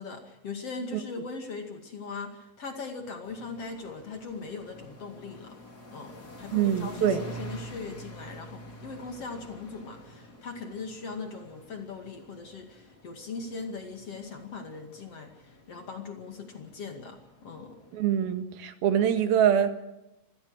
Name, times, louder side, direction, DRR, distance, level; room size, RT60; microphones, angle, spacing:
voice 1, 0.0-5.6 5.9-17.8, left 4 dB, 45° left, 4 dB, 2.9 m, -40 dB
sound 1, 3.2-18.4, right 1 dB, 25° left, 3.5 m, -48 dB
voice 2, 6.5-7.2 17.9-19.7, right 9 dB, 85° right, 8 dB, 3.5 m, -24 dB
26.0 x 16.5 x 6.4 m, 0.93 s
omnidirectional pair, 4.3 m